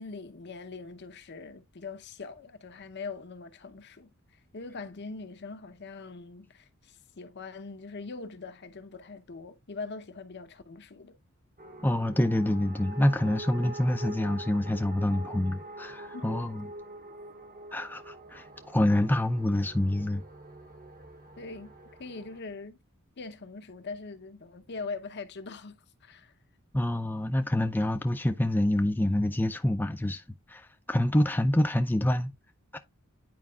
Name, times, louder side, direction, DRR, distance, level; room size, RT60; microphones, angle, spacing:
voice 1, 0.0-11.2 16.1-16.3 21.4-21.7 22.0-22.8 23.2-26.3, left 4 dB, 55° left, 0.7 m, -42 dB
sound 1, 11.6-22.4, right 1 dB, 45° right, 1.1 m, -45 dB
voice 2, 11.8-16.7 17.7-18.4 18.7-20.2 26.7-30.2 30.5-32.3 32.7-32.8, left 1 dB, 10° left, 0.4 m, -26 dB
9.4 x 4.7 x 2.3 m
head